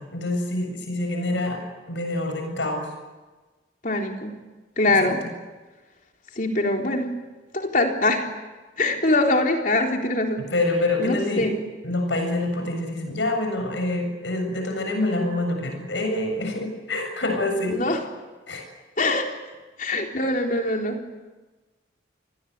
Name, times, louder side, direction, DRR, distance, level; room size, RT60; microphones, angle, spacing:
voice 1, 0.0-1.6 1.9-2.8 4.9-5.1 10.5-11.5 11.8-17.8 18.5-18.6, left 2 dB, 75° left, 4 dB, 7.6 m, -26 dB
voice 2, 3.8-4.3 4.8-5.2 6.4-7.1 7.5-8.3 8.8-10.4 11.0-11.5 17.7-18.0 19.0-19.3 19.8-21.0, left 2 dB, 45° left, 2 dB, 3.8 m, -23 dB
29.0 x 20.5 x 9.6 m, 1.2 s
head